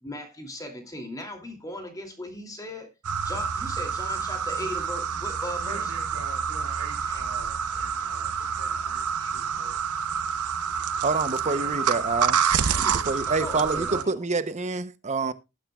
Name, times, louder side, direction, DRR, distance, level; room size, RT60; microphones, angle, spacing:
voice 1, 0.0-2.9 3.2-5.9 7.1-7.2 7.6-8.1 8.5-8.9 9.2-9.7 10.8-11.0 11.7-11.8 12.6-14.1, left 1 dB, 15° left, 2.6 m, -39 dB
sound 1, 3.0-14.0, right 7 dB, 85° right, 0.9 m, -28 dB
voice 2, 5.6-9.0 9.3-9.8 11.4-12.0 12.6-13.1 13.5-13.8, right 3 dB, 70° right, 4.9 m, -45 dB
voice 3, 11.0-12.4 13.1-15.3, right 3 dB, 30° right, 0.7 m, -27 dB
19.0 x 8.9 x 2.3 m
head